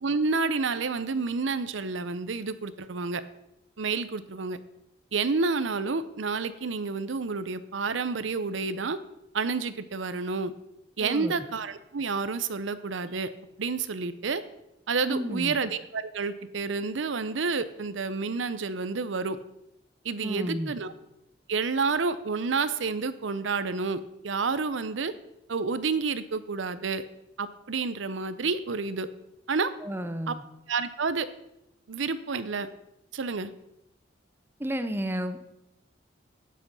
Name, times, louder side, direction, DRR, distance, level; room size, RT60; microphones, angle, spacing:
voice 1, 0.0-3.2 3.8-4.6 5.1-9.0 9.3-10.5 11.0-13.3 13.6-14.4 14.9-19.4 20.0-20.9 21.5-25.1 25.5-27.0 27.4-29.1 29.5-29.7 30.3-30.4 30.7-31.3 31.9-32.7 33.1-33.5, right 4 dB, 80° right, 13 dB, 0.7 m, -29 dB
voice 2, 11.0-11.3 15.1-15.6 20.2-20.7 29.8-30.4 34.6-35.6, equal, 10° right, 9 dB, 0.7 m, -32 dB
11.5 x 8.5 x 5.4 m, 0.85 s
head